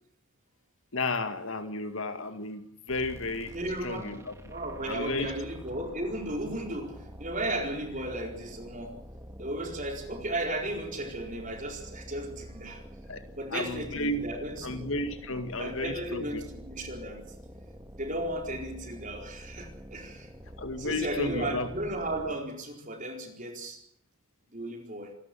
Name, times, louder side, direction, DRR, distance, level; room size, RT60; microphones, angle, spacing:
voice 1, 0.9-2.6 2.9-3.5 3.8-4.5 4.9-5.3 13.1-13.3 13.5-14.3 14.6-16.4 20.6-21.7, left 2 dB, 60° left, 8 dB, 2.2 m, -33 dB
sound 1, 2.9-22.5, equal, 15° right, 2.1 m, -47 dB
voice 2, 3.5-4.1 4.5-9.0 9.4-12.8 13.3-14.9 15.6-17.2 17.9-20.3 20.8-23.8 24.5-25.1, right 1 dB, 35° right, 3 dB, 4.3 m, -35 dB
27.5 x 13.0 x 8.6 m, 0.65 s
head